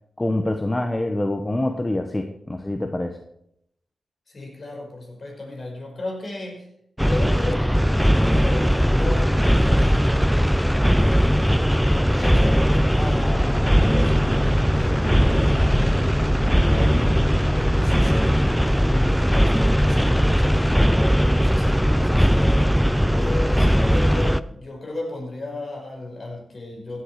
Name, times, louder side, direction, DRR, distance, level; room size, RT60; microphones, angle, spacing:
voice 1, 0.2-3.2, left 1 dB, 20° left, 6 dB, 1.0 m, -25 dB
voice 2, 4.3-6.7 7.1-7.7 8.0-9.3 9.6-10.5 11.9-15.2 15.4-16.2 16.7-20.7 21.1-22.5 23.1-27.0, left 2 dB, 50° left, 1 dB, 5.1 m, -35 dB
sound 1, 7.0-24.4, equal, ahead, 0.5 m, -19 dB
16.0 x 8.3 x 4.9 m, 0.74 s
cardioid pair, 60°, 0 cm